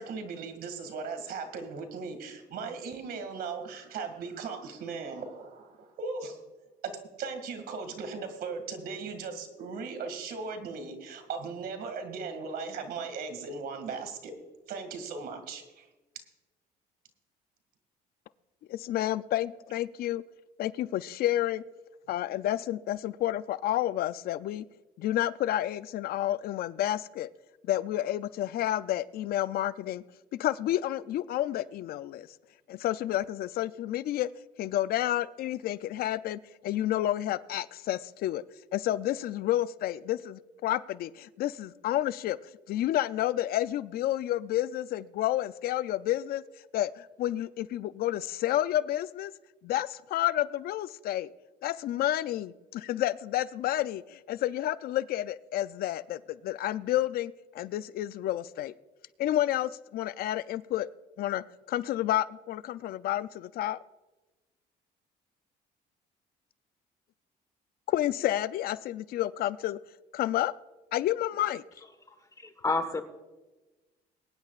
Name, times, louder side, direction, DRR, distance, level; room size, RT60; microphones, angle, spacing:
voice 1, 0.0-6.4 6.8-6.9 7.2-14.3 14.7-15.9, right 4 dB, 65° right, 7 dB, 2.1 m, -38 dB
voice 2, 18.7-20.2 20.6-21.6 22.1-24.7 25.0-27.3 27.7-30.0 30.3-32.3 32.7-34.3 34.6-38.4 38.7-42.4 42.7-46.4 46.7-49.3 49.6-51.3 51.6-58.7 59.2-60.9 61.2-63.8 67.9-69.8 70.1-70.5 70.9-71.6, left 13 dB, 65° left, 16 dB, 0.4 m, -30 dB
voice 3, 72.4-73.0, left 3 dB, 20° left, 9 dB, 1.4 m, -29 dB
22.0 x 10.5 x 2.4 m, 1.1 s
cardioid pair, 110°, 17 cm